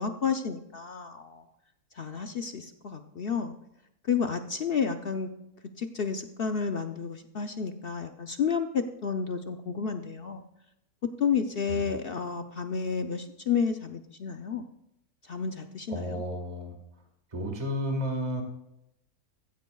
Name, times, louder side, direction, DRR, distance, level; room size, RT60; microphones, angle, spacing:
voice 1, 0.0-1.4 2.0-3.6 4.1-5.3 5.8-10.4 11.2-14.7 15.3-16.2, left 6 dB, 55° left, 6 dB, 0.7 m, -31 dB
voice 2, 15.9-16.7 17.3-18.4, equal, 25° right, 3 dB, 1.7 m, -32 dB
15.5 x 15.0 x 2.3 m, 0.82 s
omnidirectional pair, 1.6 m